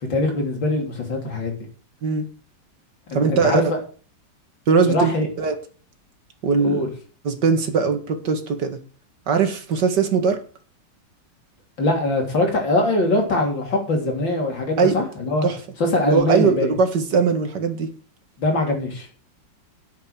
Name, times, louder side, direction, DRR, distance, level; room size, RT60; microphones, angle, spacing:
voice 1, 0.1-1.6 3.1-3.8 4.7-5.3 6.6-6.9 11.8-15.5 15.8-16.7 18.4-19.1, left 1 dB, 75° left, 2 dB, 4.1 m, -22 dB
voice 2, 3.1-3.6 4.7-5.1 5.4-5.5 6.4-6.8 7.2-8.8 9.3-10.4 14.8-14.9 15.4-15.6 16.1-17.9, right 5 dB, 65° right, 6 dB, 2.4 m, -20 dB
10.5 x 7.9 x 6.6 m, 0.39 s
omnidirectional pair, 2.1 m